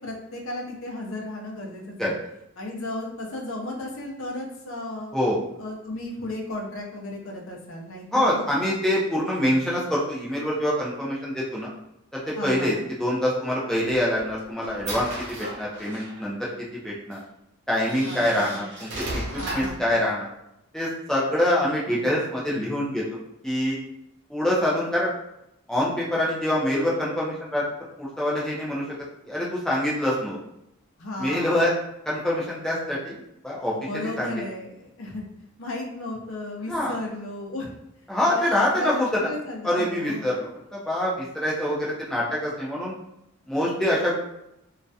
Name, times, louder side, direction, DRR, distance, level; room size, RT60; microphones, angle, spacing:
voice 1, 0.0-2.1 2.6-5.2 5.6-8.4 12.3-12.8 18.1-18.6 19.4-19.8 21.3-21.5 21.9-22.1 31.0-31.8 33.7-35.2 35.6-37.7 38.3-40.3, left 1 dB, 65° left, -1 dB, 0.5 m, -34 dB
voice 2, 8.1-11.7 12.1-17.2 17.7-19.0 19.5-20.3 20.7-23.2 23.4-23.8 24.3-25.1 25.7-27.6 28.0-28.8 29.2-30.4 31.2-31.7 32.1-34.3 36.7-36.9 38.1-39.2 39.6-42.9 43.5-44.2, left 1 dB, ahead, -6 dB, 0.4 m, -25 dB
sound 1, 13.9-16.3 17.1-17.2 17.8-19.9, right 1 dB, 50° right, 0.6 m, -35 dB
2.3 x 2.1 x 2.6 m, 0.83 s
head